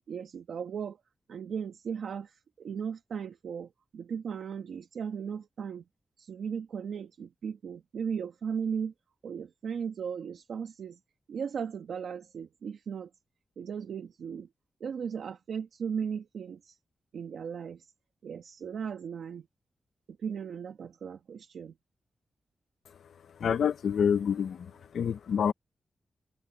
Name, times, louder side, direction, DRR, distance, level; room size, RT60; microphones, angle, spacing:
voice 1, 0.1-1.0 1.3-5.8 6.2-8.9 9.2-11.0 11.3-13.1 13.6-14.5 14.8-16.8 17.1-17.9 18.2-19.5 20.1-21.7, right 7 dB, 85° right, 1.5 m, -37 dB
voice 2, 23.4-24.7 24.9-25.5, left 7 dB, 85° left, 0.7 m, -27 dB
wide cardioid pair, 170°, 0 cm